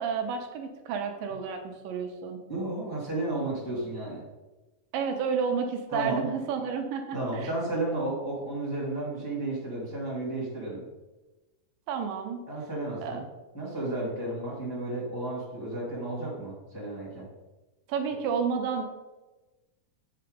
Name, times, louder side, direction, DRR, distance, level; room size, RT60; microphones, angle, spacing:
voice 1, 0.0-2.4 4.9-7.5 11.9-12.4 13.0-13.2 17.9-18.8, right 6 dB, 80° right, 5 dB, 2.4 m, -31 dB
voice 2, 2.5-4.2 5.9-6.3 7.1-10.8 12.5-13.2 13.5-17.3, right 2 dB, 10° left, -6 dB, 1.9 m, -32 dB
7.6 x 5.8 x 5.1 m, 1.1 s
omnidirectional pair, 4.1 m